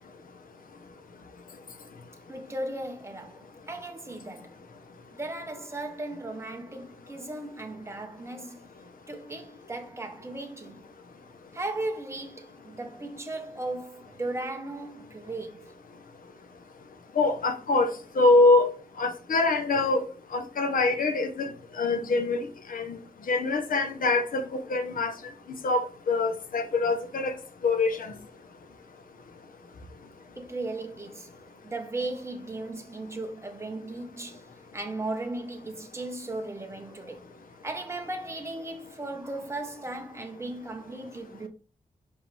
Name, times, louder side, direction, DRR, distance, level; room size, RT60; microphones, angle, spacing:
voice 1, 2.3-4.6 5.1-8.6 9.1-10.9 11.5-15.7 30.3-31.3 31.6-37.3 37.6-41.5, right 2 dB, 20° right, 1.2 m, -36 dB
voice 2, 17.2-17.9 18.2-18.7 19.0-20.0 20.3-21.5 21.8-22.4 22.7-23.0 23.3-25.1 25.6-27.4 27.6-28.1, left 3 dB, 70° left, 1.1 m, -24 dB
5.3 x 5.2 x 3.5 m
wide cardioid pair, 135°, 15 cm